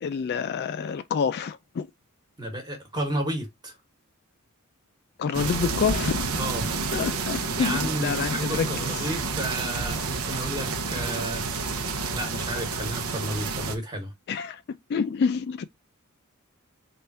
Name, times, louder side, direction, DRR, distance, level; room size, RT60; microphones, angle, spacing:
voice 1, 0.0-1.9 5.2-6.3 6.9-9.1 14.3-14.6 14.9-15.6, left 6 dB, 50° left, 0.3 m, -27 dB
voice 2, 2.4-3.7 6.4-6.7 7.6-11.4 12.1-14.1, right 1 dB, 20° right, 1.2 m, -32 dB
sound 1, 5.3-13.8, right 4 dB, 80° right, 0.7 m, -29 dB
3.4 x 2.5 x 4.1 m
head